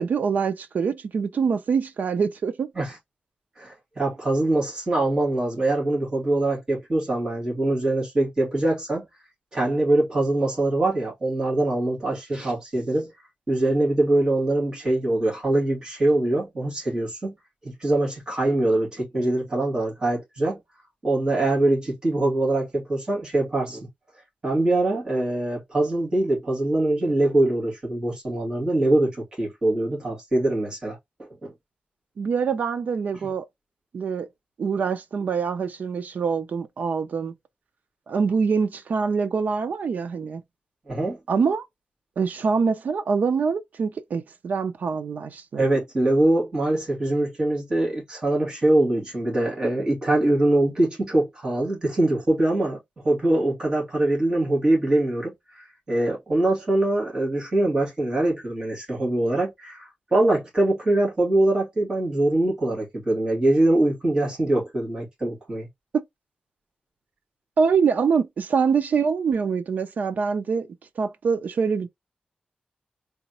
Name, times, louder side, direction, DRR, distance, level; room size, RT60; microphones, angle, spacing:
voice 1, 0.0-2.7 32.2-33.4 33.9-34.3 34.6-37.3 38.1-40.4 41.3-41.6 42.2-45.7 65.9-66.0 67.6-70.7 71.0-71.9, right 5 dB, 70° right, 0.6 m, -24 dB
voice 2, 3.6-9.1 9.5-13.1 13.5-17.3 17.6-20.6 21.0-23.9 24.4-31.0 31.4-31.5 33.1-33.3 40.9-41.2 45.6-52.8 53.0-65.7, right 1 dB, 30° right, 2.4 m, -23 dB
4.0 x 3.6 x 3.0 m
wide cardioid pair, 160°, 3 cm